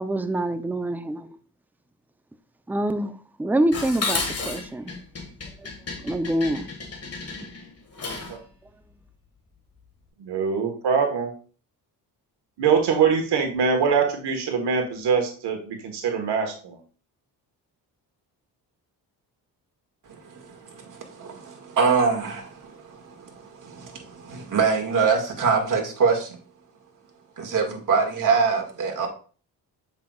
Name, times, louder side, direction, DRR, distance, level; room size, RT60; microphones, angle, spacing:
voice 1, 0.0-1.4 2.7-5.0 5.6-5.7 6.0-6.7, right 1 dB, 5° right, 10 dB, 0.5 m, -26 dB
Dishes pots and pans, 3.7-8.4, left 3 dB, 35° left, 1.8 m, -32 dB
voice 2, 10.2-11.3 12.6-16.8, right 6 dB, 80° right, 4 dB, 1.5 m, -23 dB
voice 3, 20.3-26.4 27.4-29.1, right 5 dB, 50° right, 2 dB, 2.0 m, -24 dB
7.5 x 5.8 x 2.4 m, 0.40 s
cardioid pair, 85°, 40 cm